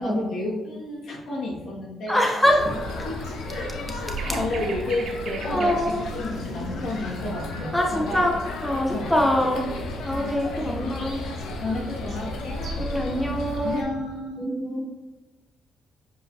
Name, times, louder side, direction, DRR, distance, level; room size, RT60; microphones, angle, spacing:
voice 1, 0.0-2.2 3.0-8.3 8.9-9.1 10.2-10.3 11.6-12.9 13.4-14.6, left 2 dB, 70° left, -4 dB, 2.1 m, -32 dB
sound 1, 2.0-7.1 10.6-13.0, right 6 dB, 60° right, 0.8 m, -43 dB
voice 2, 2.1-2.8 5.5-6.0 7.7-8.4 8.6-9.7 10.0-11.2 12.8-13.9 14.4-14.8, equal, 10° left, 0 dB, 0.9 m, -24 dB
sound 2, 2.4-13.8, left 2 dB, 85° left, 1.0 m, -33 dB
7.5 x 5.0 x 2.9 m, 1.1 s
cardioid pair, 90°, 0 cm